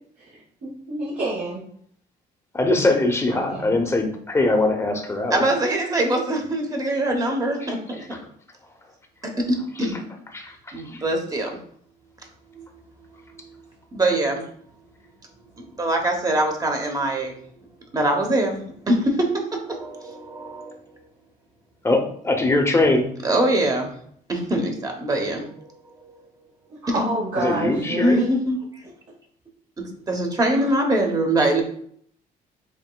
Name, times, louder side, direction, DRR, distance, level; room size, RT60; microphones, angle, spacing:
voice 1, 0.6-1.6 3.3-3.7 26.7-28.2 30.5-30.7, right 2 dB, 60° right, -8 dB, 1.8 m, -28 dB
voice 2, 2.5-5.4 10.3-10.6 10.8-11.0 21.8-23.1 27.4-28.2, left 2 dB, 15° left, 3 dB, 0.8 m, -21 dB
voice 3, 5.3-8.0 9.4-10.1 10.7-11.6 12.5-12.7 13.9-14.4 15.5-17.4 17.9-18.6 18.9-19.3 19.6-20.7 23.2-23.9 24.3-25.6 26.0-26.1 26.9-27.1 27.9-28.8 29.8-31.6, right 1 dB, 20° right, 2 dB, 0.9 m, -23 dB
7.2 x 2.9 x 2.3 m, 0.63 s
cardioid pair, 120°, 17 cm